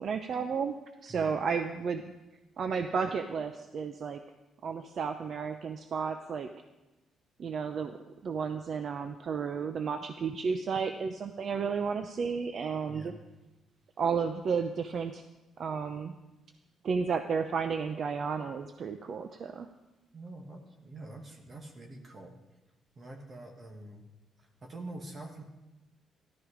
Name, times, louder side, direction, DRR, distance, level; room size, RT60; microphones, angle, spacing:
voice 1, 0.0-2.1 2.6-4.2 4.6-6.5 7.4-8.0 8.2-13.1 14.0-15.2 15.6-16.1 16.8-19.7, right 5 dB, 55° right, 8 dB, 0.7 m, -32 dB
voice 2, 12.9-13.2 20.1-22.4 23.0-24.1 24.4-25.4, right 2 dB, 40° right, 2 dB, 1.8 m, -45 dB
13.5 x 12.0 x 5.0 m, 1.0 s
cardioid pair, 90°, 0 cm